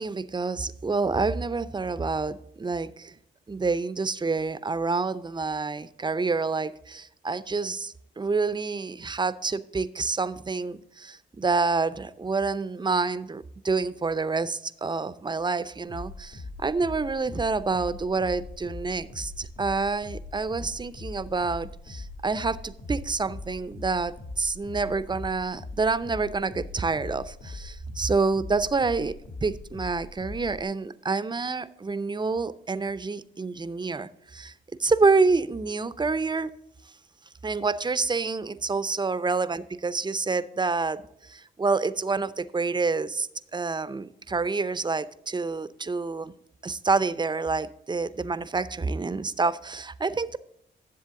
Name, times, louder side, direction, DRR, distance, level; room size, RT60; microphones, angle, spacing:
voice 1, 0.0-3.1 3.5-29.1 29.4-34.5 34.8-36.5 37.4-46.3 46.6-50.4, right 4 dB, 25° right, 15 dB, 0.6 m, -28 dB
sound 1, 15.9-30.6, left 2 dB, 75° left, 2.2 m, -41 dB
10.5 x 7.3 x 3.7 m, 0.76 s
cardioid pair, 60°, 19 cm